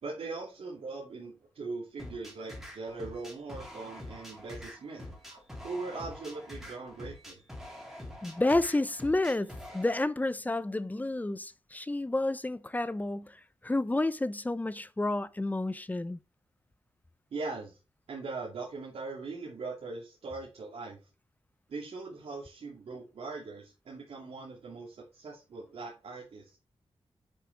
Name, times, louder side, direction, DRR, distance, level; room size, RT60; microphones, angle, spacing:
voice 1, 0.0-7.4 17.3-17.8 18.1-21.0 21.7-26.6, right 3 dB, 85° right, 2.6 m, -40 dB
sound 1, 2.0-10.0, left 1 dB, 5° right, 3.3 m, -45 dB
voice 2, 8.2-16.2, left 2 dB, 15° left, 0.6 m, -30 dB
10.0 x 6.8 x 3.4 m
wide cardioid pair, 105°, 10 cm